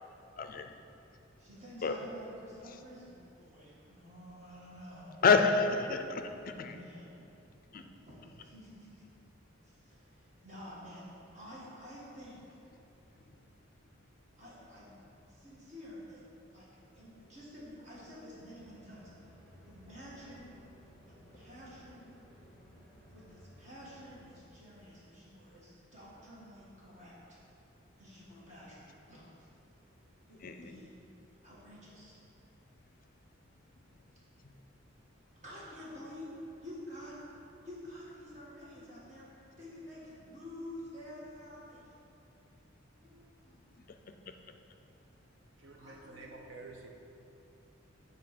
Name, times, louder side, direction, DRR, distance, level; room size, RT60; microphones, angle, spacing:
voice 1, 0.4-0.8 1.8-2.0 5.2-6.8 7.7-7.8 30.4-30.7, left 5 dB, 45° left, 7 dB, 0.4 m, -28 dB
voice 2, 1.4-5.1 6.4-7.3 8.0-9.0 9.6-12.4 14.4-14.9 15.3-16.2 16.5-16.7 16.9-19.0 19.6-20.5 21.3-22.1 23.1-27.4 28.0-29.5 30.3-30.9 31.4-32.2 35.4-37.1 37.6-39.3 39.6-41.9 42.9-43.6 45.8-46.4, equal, 35° right, -7 dB, 1.7 m, -50 dB
sound 1, 18.3-24.4, equal, 5° right, 1.4 m, -58 dB
voice 3, 45.6-46.9, right 3 dB, 65° right, 1 dB, 0.8 m, -49 dB
7.5 x 4.0 x 5.9 m, 2.8 s
head